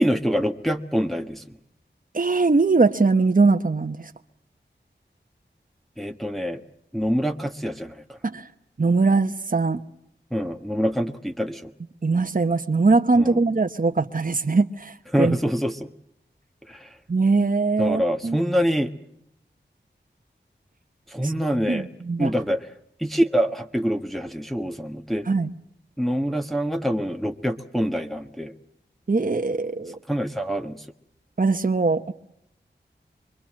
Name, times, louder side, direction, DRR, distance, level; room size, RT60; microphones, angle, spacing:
voice 1, 0.0-1.6 6.0-6.6 6.9-8.2 10.3-11.7 13.2-13.4 15.1-15.9 16.7-16.9 17.8-18.9 21.1-21.9 22.2-22.7 23.0-25.3 26.0-28.5 30.1-30.9, equal, ahead, 4 dB, 1.3 m, -25 dB
voice 2, 2.1-4.1 8.2-8.5 8.8-9.8 12.0-15.4 17.1-18.4 21.2-21.3 21.7-22.3 25.3-25.5 29.1-30.0 31.4-32.1, right 3 dB, 45° right, 6 dB, 1.1 m, -21 dB
26.5 x 22.5 x 7.6 m, 0.76 s
wide cardioid pair, 70°, 19 cm